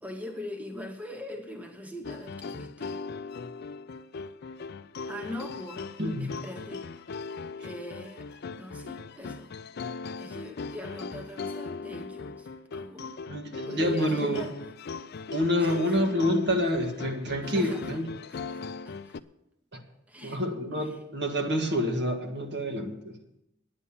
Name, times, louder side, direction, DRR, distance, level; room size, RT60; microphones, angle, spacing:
voice 1, 0.0-3.0 5.1-7.1 7.6-9.5 10.2-13.1 13.7-14.6 15.6-16.0 17.4-18.0 18.3-19.2 20.1-20.4 20.8-21.0, left 1 dB, 5° right, 4 dB, 0.9 m, -42 dB
sound 1, 2.0-19.2, left 4 dB, 50° left, 0.4 m, -39 dB
voice 2, 6.0-6.4 13.3-14.4 15.3-18.1 19.7-19.8 20.2-23.2, equal, 60° right, 3 dB, 1.8 m, -28 dB
9.9 x 9.8 x 7.2 m, 0.84 s
head